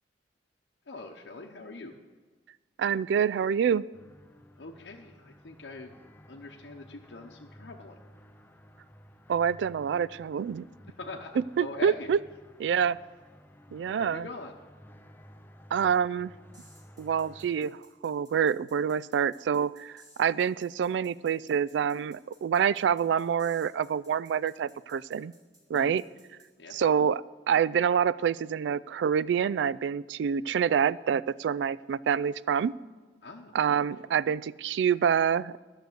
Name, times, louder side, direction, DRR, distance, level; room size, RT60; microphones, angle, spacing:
voice 1, 0.9-2.0 4.6-5.9 6.3-8.0 11.0-11.3 11.6-12.1 13.7-14.6 25.7-26.0 26.6-26.8 33.2-33.5 34.0-34.1, left 2 dB, 80° left, 0 dB, 0.8 m, -43 dB
voice 2, 2.8-3.8 9.3-10.6 11.4-12.2 12.6-13.0 13.7-14.3 15.7-16.3 17.0-25.3 25.7-26.0 26.7-32.7 33.5-35.6, right 7 dB, 80° right, 19 dB, 0.3 m, -27 dB
sound 1, 3.9-17.5, equal, 10° left, 0.5 m, -54 dB
sound 2, 16.5-26.5, right 1 dB, 25° right, 3.2 m, -60 dB
12.0 x 6.7 x 7.7 m, 1.4 s
head